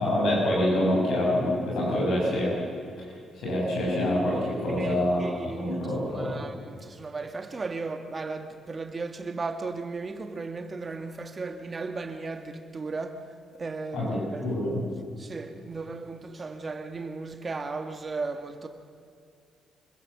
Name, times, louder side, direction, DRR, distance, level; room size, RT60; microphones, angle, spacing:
voice 1, 0.0-2.6 3.0-6.4 13.9-14.8, left 1 dB, 75° left, 7.4 m, -26 dB
voice 2, 4.7-14.5 15.2-18.7, right 3 dB, 30° right, 1.6 m, -36 dB
25.5 x 15.5 x 7.2 m
cardioid pair, 90°, 0 cm